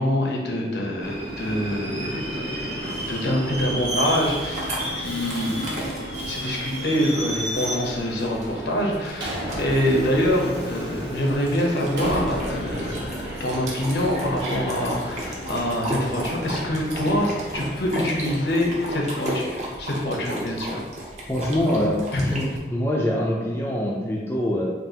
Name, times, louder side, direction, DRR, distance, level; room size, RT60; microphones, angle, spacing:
voice 1, 0.0-20.8 22.1-22.4, left 1 dB, 70° left, -1 dB, 0.8 m, -25 dB
Subway metro underground, 1.0-19.4, right 1 dB, 85° right, 0.9 m, -34 dB
sound 1, 1.1-19.4, left 2 dB, 90° left, 0.4 m, -41 dB
sound 2, 3.5-22.6, right 1 dB, 40° right, 0.8 m, -35 dB
voice 2, 21.3-22.0 22.2-24.7, left 1 dB, 15° left, -3 dB, 0.4 m, -24 dB
5.4 x 2.5 x 2.8 m, 1.4 s
head